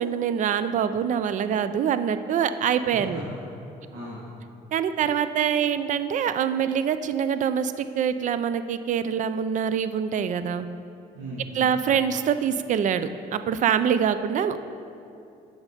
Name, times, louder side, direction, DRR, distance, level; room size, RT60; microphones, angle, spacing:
voice 1, 0.0-3.2 4.7-10.7 11.5-14.6, right 8 dB, 50° right, 12 dB, 0.4 m, -25 dB
voice 2, 2.9-3.4 3.9-4.2 11.1-11.7, right 1 dB, 90° right, -7 dB, 1.7 m, -37 dB
8.2 x 6.5 x 5.0 m, 2.7 s
cardioid pair, 110°, 17 cm